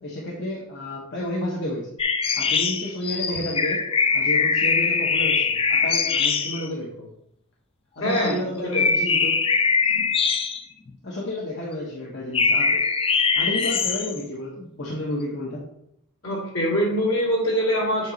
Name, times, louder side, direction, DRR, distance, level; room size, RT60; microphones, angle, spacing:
voice 1, 0.0-1.9 2.3-3.8 4.1-7.1 8.0-9.4 11.0-12.9 13.4-15.6, left 1 dB, 55° left, -3 dB, 1.0 m, -31 dB
sound 1, 2.0-6.7 8.2-8.4 8.7-10.9 12.3-14.2, left 5 dB, 25° left, 0.3 m, -22 dB
voice 2, 8.0-8.4 8.7-8.8 16.2-18.1, equal, 70° left, -4 dB, 2.6 m, -23 dB
7.7 x 2.9 x 5.1 m, 0.77 s
head